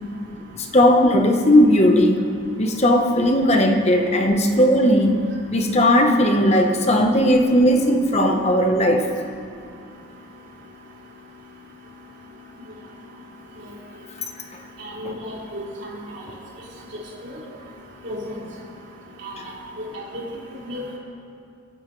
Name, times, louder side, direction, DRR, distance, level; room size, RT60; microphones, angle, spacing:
voice 1, 0.6-2.3 2.6-9.1 15.0-15.2, equal, 30° left, 3 dB, 1.1 m, -17 dB
voice 2, 15.0-15.6 17.2-17.3 18.0-18.3 19.2-19.3 19.9-20.2 20.7-21.0, left 1 dB, 60° right, -7 dB, 3.8 m, -32 dB
28.5 x 11.5 x 3.3 m, 2.4 s
head